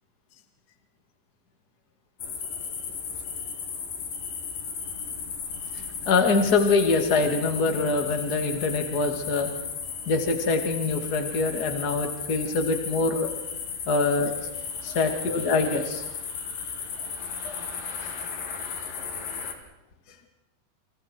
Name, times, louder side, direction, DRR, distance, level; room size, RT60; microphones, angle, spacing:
sound 1, 2.2-19.5, left 6 dB, 65° left, 4.1 m, -35 dB
voice 1, 5.7-9.5 10.1-13.3 13.9-14.3 14.8-16.0 17.4-17.5, left 3 dB, 30° left, 5 dB, 2.3 m, -24 dB
29.5 x 27.0 x 4.7 m, 1.0 s
omnidirectional pair, 4.4 m